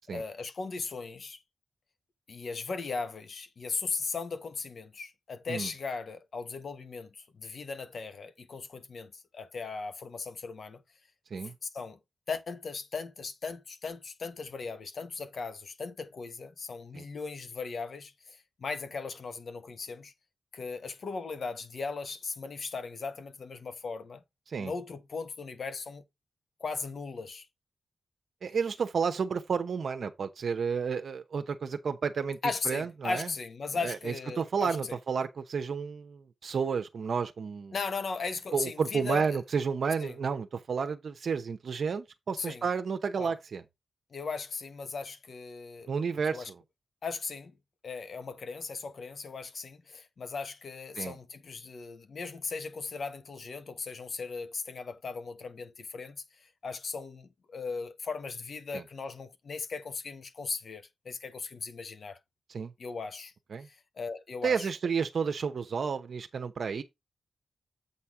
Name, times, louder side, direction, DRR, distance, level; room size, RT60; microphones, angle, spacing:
voice 1, 0.1-1.4 2.3-10.8 11.4-12.0 12.3-20.1 20.5-24.2 24.6-26.0 26.6-27.4 32.4-35.0 37.7-39.4 40.0-40.2 42.4-42.7 43.2-43.3 44.1-45.9 46.2-46.5 47.0-47.5 47.8-62.2 62.8-63.3 63.6-64.7, left 4 dB, 65° left, 1.2 m, -38 dB
voice 2, 28.4-32.4 32.7-33.3 33.7-37.7 38.5-43.6 45.9-46.5 51.0-51.1 58.7-58.8 62.5-62.7 63.5-63.7 64.4-66.8, right 6 dB, 70° right, 0.8 m, -31 dB
8.0 x 4.2 x 4.8 m
cardioid pair, 70°, 0 cm